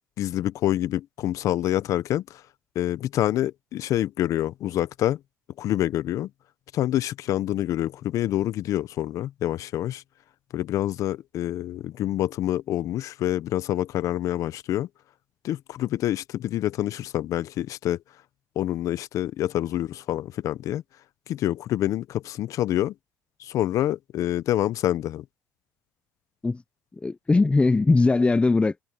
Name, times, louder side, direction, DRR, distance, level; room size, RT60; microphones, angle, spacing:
voice 1, 0.2-2.4 2.7-5.2 5.6-6.3 6.7-10.0 10.5-14.9 15.4-18.0 18.6-20.8 21.3-22.9 23.4-25.2, left 13 dB, 65° left, 1.0 m, -27 dB
voice 2, 26.9-28.8, left 3 dB, 20° left, 0.8 m, -20 dB
supercardioid pair, 70°, 6 cm